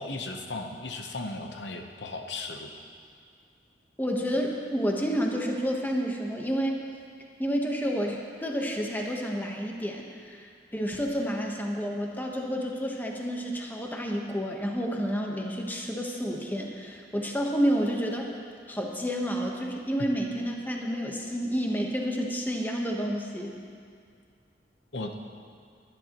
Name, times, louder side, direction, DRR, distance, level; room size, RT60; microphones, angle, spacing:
voice 1, 0.0-2.7 20.0-20.1 24.9-25.1, left 2 dB, 75° left, 3 dB, 0.9 m, -36 dB
voice 2, 4.0-6.9 7.4-18.3 18.7-23.6, equal, 10° left, 0 dB, 1.1 m, -30 dB
21.5 x 10.5 x 3.0 m, 2.2 s
head